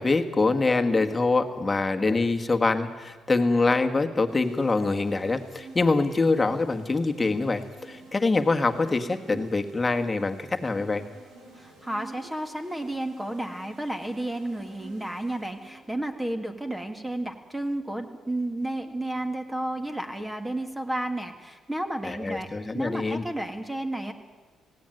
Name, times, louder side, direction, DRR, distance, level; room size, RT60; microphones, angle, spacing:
voice 1, 0.0-11.1 22.0-23.2, left 3 dB, 25° left, 6 dB, 1.7 m, -24 dB
sound 1, 4.3-16.0, right 3 dB, 90° right, 6.0 m, -49 dB
voice 2, 11.6-24.1, right 1 dB, 10° right, 6 dB, 1.9 m, -32 dB
19.0 x 16.5 x 9.2 m, 1.4 s
cardioid pair, 90°, 0 cm